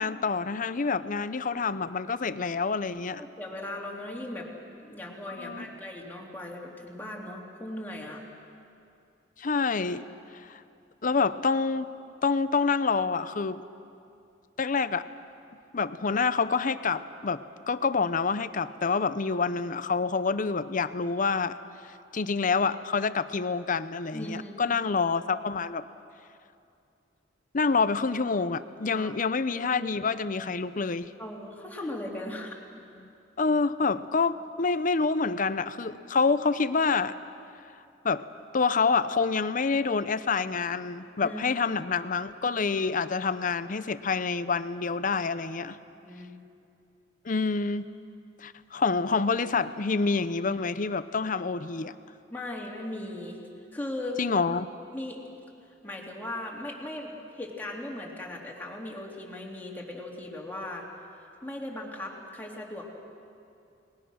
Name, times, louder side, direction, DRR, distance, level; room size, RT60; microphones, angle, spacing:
voice 1, 0.0-3.2 5.3-5.7 9.4-10.0 10.3-10.6 11.0-11.9 12.2-13.6 14.6-15.1 15.7-17.4 17.7-21.6 22.1-25.8 27.5-31.1 33.4-37.1 38.0-38.2 38.5-45.8 47.2-47.9 48.4-51.9 54.2-54.7, left 4 dB, 45° left, 13 dB, 0.7 m, -27 dB
voice 2, 3.2-4.5 4.8-8.3 24.1-24.6 28.9-29.1 29.7-29.9 31.2-32.6 41.2-41.6 45.6-45.7 46.0-46.4 52.3-53.4 53.7-54.2 54.9-55.2 55.8-60.9 61.4-62.9, left 1 dB, 10° left, -2 dB, 3.0 m, -38 dB
30.0 x 20.0 x 6.4 m, 2.5 s
head